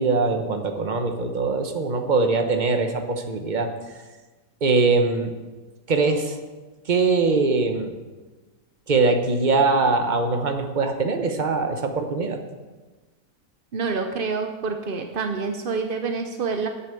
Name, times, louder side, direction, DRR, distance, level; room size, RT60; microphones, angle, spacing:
voice 1, 0.0-3.7 4.6-5.3 5.9-6.4 6.9-7.9 8.9-12.4, right 3 dB, 35° right, 5 dB, 0.9 m, -22 dB
voice 2, 13.7-16.7, right 4 dB, 60° right, 5 dB, 0.5 m, -27 dB
8.6 x 7.1 x 8.3 m, 1.3 s
omnidirectional pair, 1.8 m